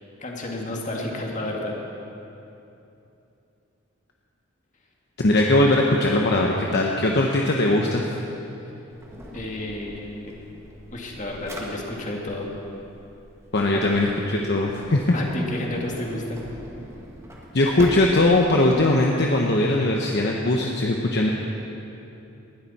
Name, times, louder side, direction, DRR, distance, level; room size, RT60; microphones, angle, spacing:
voice 1, 0.2-1.8 9.3-10.4 10.9-12.5 13.7-13.8 15.1-16.4, left 1 dB, 40° left, -1 dB, 2.0 m, -31 dB
voice 2, 5.2-8.0 13.5-15.1 17.5-21.3, left 2 dB, 55° left, 0 dB, 1.0 m, -20 dB
Drawer open or close, 8.9-18.8, equal, 15° right, 1.7 m, -42 dB
19.5 x 12.5 x 4.3 m, 2.9 s
head